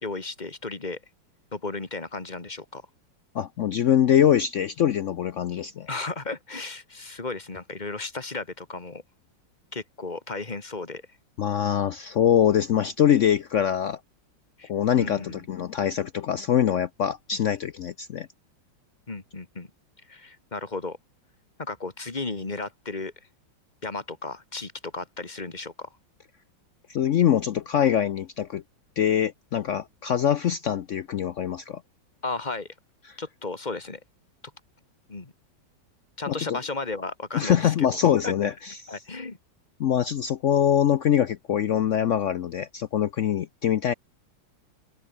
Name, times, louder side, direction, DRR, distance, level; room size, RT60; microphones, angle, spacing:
voice 1, 0.0-1.0 1.5-2.8 5.9-9.0 9.7-11.0 14.6-14.7 15.0-15.5 19.1-19.7 20.1-21.0 21.6-23.1 23.8-25.9 32.2-32.7 33.2-34.0 35.1-35.3 36.2-37.9 38.2-38.3 38.9-39.4, left 3 dB, 25° left, 2.1 m, -34 dB
voice 2, 3.3-5.9 11.4-14.0 14.7-18.3 26.9-28.6 29.0-31.8 33.1-33.2 36.3-36.6 37.3-39.0 39.8-43.9, left 9 dB, 75° left, 0.6 m, -23 dB
omnidirectional pair, 2.1 m